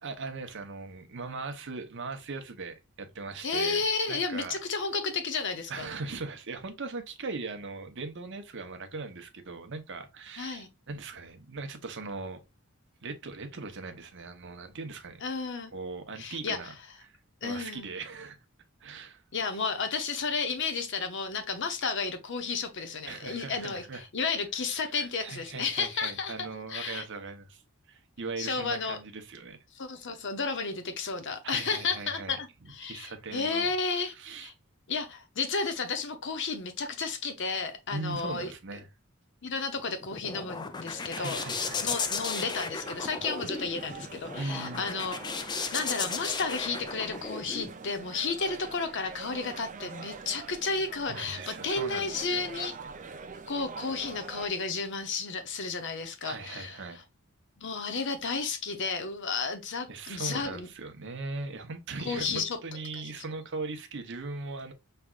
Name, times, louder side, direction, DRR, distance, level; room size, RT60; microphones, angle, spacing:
voice 1, 0.0-4.5 5.7-12.4 13.0-15.2 15.7-16.7 17.0-17.1 17.4-18.4 18.8-19.2 23.1-24.0 24.8-27.6 27.9-29.6 31.4-32.4 32.8-33.7 34.1-34.5 37.9-38.9 41.1-41.9 44.4-44.9 45.5-45.8 48.1-48.2 51.1-52.4 56.2-57.0 59.9-64.7, right 3 dB, 60° right, 0.9 m, -39 dB
voice 2, 3.4-5.9 10.4-10.7 15.2-15.7 16.2-16.7 17.4-17.9 19.3-27.0 28.4-29.0 29.7-34.1 34.4-34.5 34.9-38.5 39.4-45.2 45.7-52.7 53.5-56.8 57.6-60.7 62.0-62.6 62.9-63.0, left 4 dB, 55° left, 0.8 m, -32 dB
sound 1, 39.8-47.7, left 5 dB, 20° left, 0.4 m, -35 dB
sound 2, 41.2-54.5, right 4 dB, 35° right, 0.5 m, -44 dB
5.9 x 3.3 x 2.4 m
head